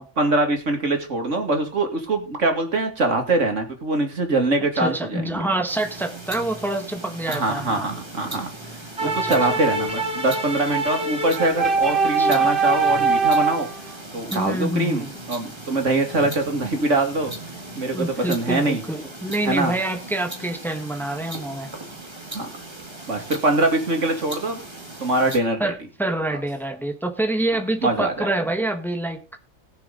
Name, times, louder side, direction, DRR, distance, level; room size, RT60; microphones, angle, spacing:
voice 1, 0.2-5.5 7.3-8.5 9.0-13.7 14.1-17.3 17.7-18.8 19.5-19.7 22.3-22.5 23.1-24.6 25.0-25.7 27.8-28.3, right 2 dB, 80° right, 4 dB, 2.7 m, -23 dB
voice 2, 4.7-7.9 9.0-9.6 11.8-12.5 14.3-15.1 17.9-21.7 25.6-29.2, right 1 dB, ahead, 5 dB, 1.5 m, -27 dB
sound 1, 5.7-25.4, right 2 dB, 20° right, 2.1 m, -38 dB
sound 2, 9.0-13.8, right 4 dB, 45° right, 2.4 m, -22 dB
19.5 x 6.9 x 4.0 m, 0.31 s
omnidirectional pair, 1.2 m